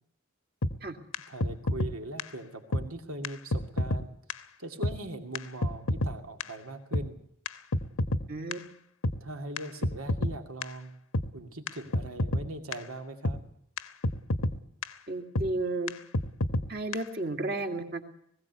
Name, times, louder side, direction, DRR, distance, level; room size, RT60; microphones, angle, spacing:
sound 1, 0.6-0.7 1.1-1.2 1.4-1.9 2.2-2.3 2.7-2.8 3.2-3.3 3.5-4.0 4.3-4.4 4.8-4.9 5.3-5.4 5.6-6.1 6.4-6.5 6.9-7.0 7.5-8.2 8.5-8.6 9.0-9.2 9.6-9.7 9.8-10.3 10.6-10.7 11.1-11.3 11.7-11.8 11.9-12.4 12.7-12.8 13.2-13.4 13.8-13.9 14.0-14.5 14.8-14.9 15.4-15.5 15.9-16.0 16.1-16.7 16.9-17.0, left 1 dB, 75° left, 1.1 m, -27 dB
voice 1, 1.3-4.1 4.6-7.2 9.2-10.9 11.3-13.4, right 1 dB, 80° right, 5 dB, 2.5 m, -40 dB
voice 2, 8.3-8.6 15.1-15.9 16.7-18.1, right 2 dB, 45° right, 5 dB, 2.3 m, -32 dB
20.0 x 16.5 x 8.2 m, 0.71 s
head